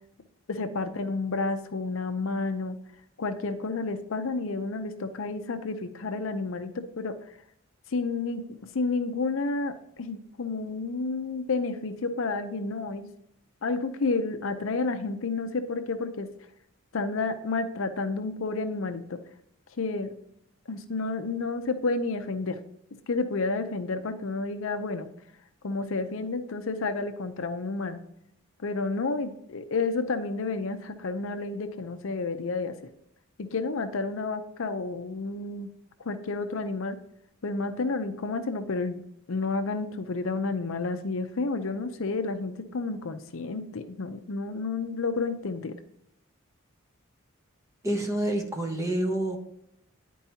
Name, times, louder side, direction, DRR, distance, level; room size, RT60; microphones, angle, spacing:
voice 1, 0.5-2.8 3.2-6.7 7.0-7.1 7.9-8.4 8.7-13.1 13.6-16.3 16.9-19.2 19.8-20.1 20.7-22.6 23.1-25.1 25.6-28.0 28.6-32.7 33.4-35.7 36.0-37.0 37.4-39.0 39.3-45.7, left 3 dB, 65° left, 9 dB, 0.6 m, -30 dB
voice 2, 47.8-49.4, right 1 dB, 15° right, 2 dB, 1.1 m, -28 dB
10.5 x 4.6 x 2.8 m, 0.78 s
head